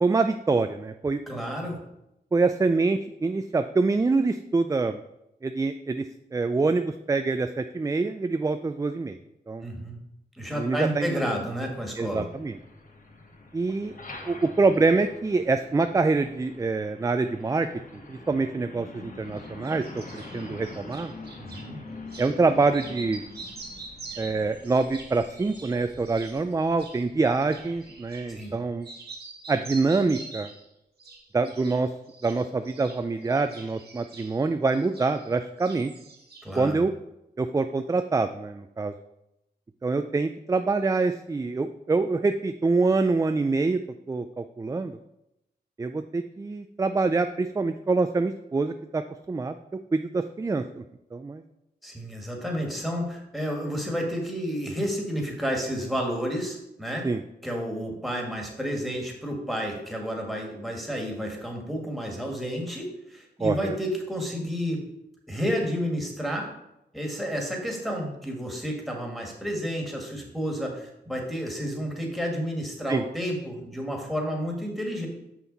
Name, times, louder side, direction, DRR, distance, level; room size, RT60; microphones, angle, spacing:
voice 1, 0.0-1.2 2.3-5.0 5.4-6.1 6.3-9.2 9.5-9.7 10.5-11.1 12.0-12.6 13.5-13.9 14.2-17.7 17.9-19.8 20.1-21.1 22.2-23.2 24.2-28.9 29.5-30.5 31.3-31.9 32.2-35.9 36.6-36.9 37.4-38.9 39.8-43.8 44.1-45.0 45.8-49.0 49.3-49.6 49.9-50.8 51.1-51.4 57.0-57.2 63.4-63.8 72.9-73.0, right 3 dB, 20° right, 8 dB, 0.3 m, -25 dB
voice 2, 1.3-1.8 9.6-10.0 10.3-12.2 21.4-21.8 28.3-28.5 36.4-36.8 51.8-57.1 57.4-64.8 65.3-66.5 66.9-75.1, equal, ahead, 0 dB, 1.9 m, -31 dB
Truck, 11.2-28.8, left 2 dB, 50° left, 1.2 m, -46 dB
sound 1, 19.4-21.7 22.1-22.4 22.7-28.6 28.8-30.7 31.0-31.8 32.1-35.3 35.6-36.6, right 3 dB, 65° right, 1.6 m, -45 dB
6.0 x 5.8 x 4.1 m, 0.86 s
cardioid pair, 65°, 18 cm